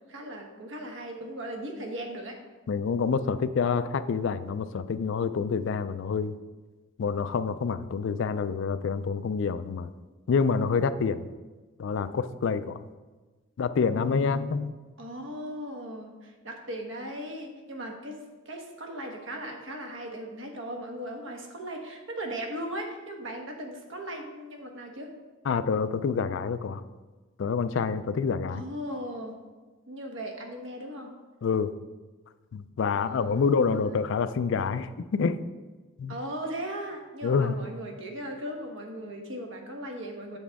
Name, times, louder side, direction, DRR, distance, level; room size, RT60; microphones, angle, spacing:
voice 1, 0.1-2.4 15.0-25.2 28.5-29.3 29.9-31.1 33.0-34.1 36.1-40.4, right 1 dB, 60° right, 2 dB, 1.1 m, -38 dB
voice 2, 2.7-6.4 7.0-9.9 10.3-11.2 11.8-12.8 13.6-14.7 25.5-26.8 27.4-28.6 31.4-31.7 32.5-35.4 36.0-36.1 37.2-37.6, left 5 dB, 60° left, 13 dB, 0.3 m, -27 dB
7.4 x 6.9 x 3.5 m, 1.3 s
head